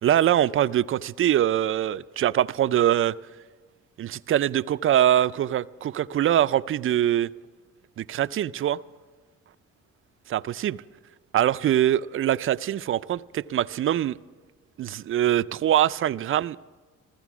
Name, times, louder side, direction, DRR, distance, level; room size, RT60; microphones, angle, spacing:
voice 1, 0.0-3.1 4.0-7.3 8.0-8.8 10.3-10.8 11.3-14.2 14.8-16.6, right 11 dB, 45° right, 0.4 m, -23 dB
15.5 x 14.5 x 6.0 m
cardioid pair, 90°, 30 cm